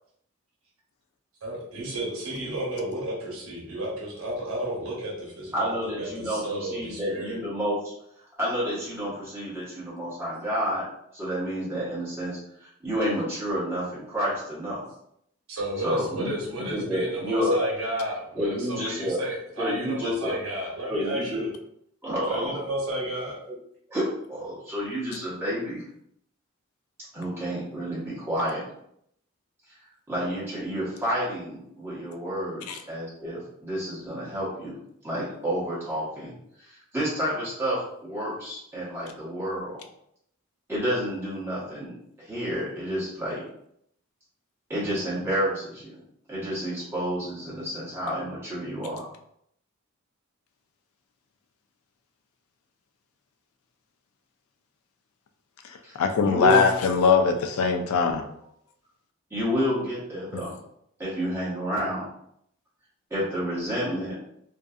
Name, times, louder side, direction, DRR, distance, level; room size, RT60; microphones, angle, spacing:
voice 1, 1.4-7.4 15.5-21.5 22.3-23.3, right 1 dB, 85° right, -4 dB, 1.0 m, -32 dB
voice 2, 5.5-7.9 8.4-10.8 11.1-14.8 15.8-17.6 18.3-19.2 19.6-20.4 20.9-21.4 22.0-22.6 23.5-23.6 23.9-25.8 27.1-28.7 30.1-34.8 35.0-36.3 36.6-39.8 40.7-43.4 44.7-46.0 46.3-49.1 55.8-56.0 56.2-56.7 59.3-60.5 61.0-62.1 63.1-64.2, equal, 10° right, -9 dB, 1.1 m, -30 dB
voice 3, 56.0-58.2 60.3-60.4, left 5 dB, 85° left, 5 dB, 0.4 m, -21 dB
2.6 x 2.3 x 2.3 m, 0.72 s
head